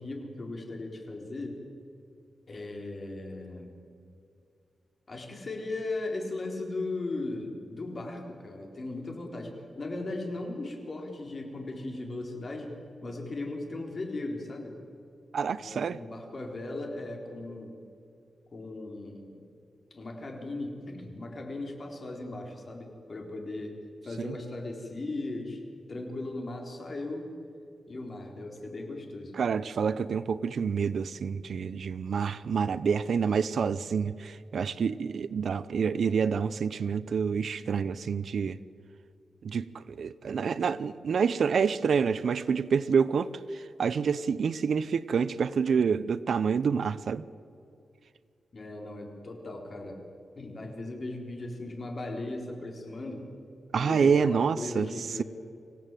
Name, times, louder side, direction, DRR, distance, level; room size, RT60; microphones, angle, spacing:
voice 1, 0.0-1.6 2.5-3.8 5.1-12.7 13.0-14.8 15.6-17.8 18.5-19.4 19.9-23.8 24.0-25.6 25.9-27.3 27.9-29.4 48.5-50.0 50.3-53.3 53.8-55.2, left 2 dB, 35° left, 2 dB, 4.0 m, -37 dB
voice 2, 15.3-16.0 24.2-24.3 29.4-38.6 39.4-47.2 53.7-54.9, right 6 dB, 65° right, 16 dB, 0.6 m, -27 dB
25.5 x 16.5 x 9.1 m, 2.5 s
wide cardioid pair, 145°, 0 cm